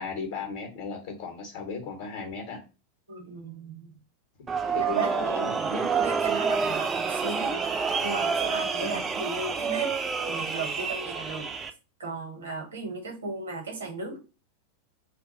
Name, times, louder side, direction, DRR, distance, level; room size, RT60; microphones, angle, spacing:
voice 1, 0.0-2.6 4.7-5.8 8.8-9.1, left 5 dB, 55° left, 2 dB, 0.7 m, -36 dB
voice 2, 3.1-3.9 4.8-10.0 10.3-11.5 12.0-14.2, right 3 dB, 70° right, 2 dB, 0.9 m, -36 dB
sound 1, 4.5-11.7, right 5 dB, 20° right, 0.3 m, -28 dB
2.3 x 2.2 x 3.8 m, 0.31 s
figure-of-eight pair, 90°, 0 cm